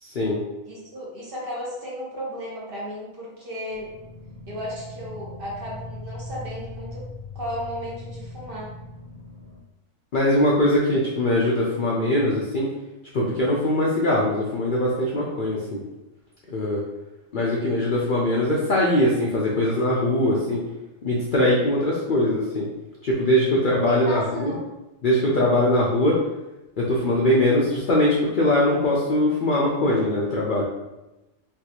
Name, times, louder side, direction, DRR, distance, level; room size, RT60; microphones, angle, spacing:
voice 1, 0.0-0.4 10.1-12.7 13.1-15.8 16.5-16.8 17.3-20.6 21.0-22.7 23.0-24.5 25.0-26.2 26.8-30.6, left 1 dB, 60° left, -5 dB, 0.5 m, -21 dB
voice 2, 0.7-3.9 4.5-7.1 7.3-8.7 23.8-24.7, equal, 50° right, -5 dB, 1.0 m, -34 dB
sound 1, 3.7-9.6, left 2 dB, 80° right, 1.4 m, -39 dB
3.4 x 2.4 x 2.8 m, 0.99 s
omnidirectional pair, 1.4 m